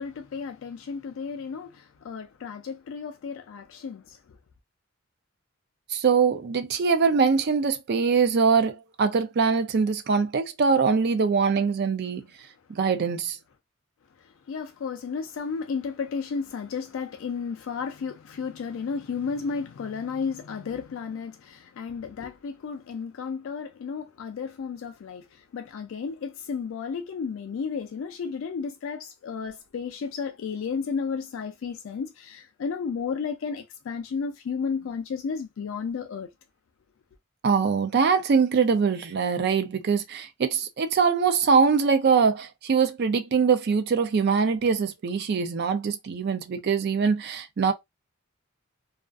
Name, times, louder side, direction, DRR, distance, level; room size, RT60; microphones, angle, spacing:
voice 1, 0.0-4.4 14.2-36.3, left 5 dB, 65° left, 0.3 m, -33 dB
voice 2, 5.9-12.2 12.7-13.4 37.4-47.7, right 5 dB, 50° right, 0.4 m, -23 dB
2.4 x 2.3 x 2.3 m
head